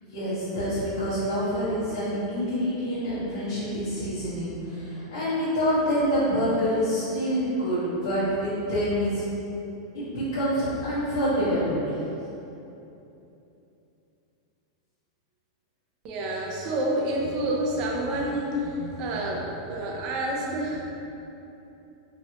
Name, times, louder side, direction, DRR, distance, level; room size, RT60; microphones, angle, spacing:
voice 1, 0.0-9.2 9.9-11.7, equal, 85° left, -14 dB, 1.1 m, -26 dB
voice 2, 16.0-20.8, right 1 dB, 30° right, -1 dB, 0.4 m, -28 dB
3.0 x 3.0 x 2.8 m, 2.9 s
supercardioid pair, 175°, 2 cm